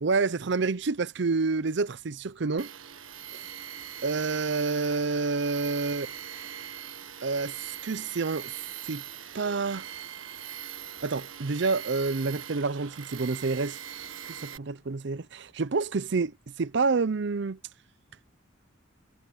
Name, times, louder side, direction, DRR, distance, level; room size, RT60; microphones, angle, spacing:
voice 1, 0.0-2.7 3.3-3.4 4.0-6.1 7.2-8.5 8.8-9.0 9.3-9.9 11.0-13.8 14.2-17.6, right 4 dB, 60° right, 0.6 m, -28 dB
Tools, 2.6-14.6, right 9 dB, 85° right, 1.6 m, -41 dB
head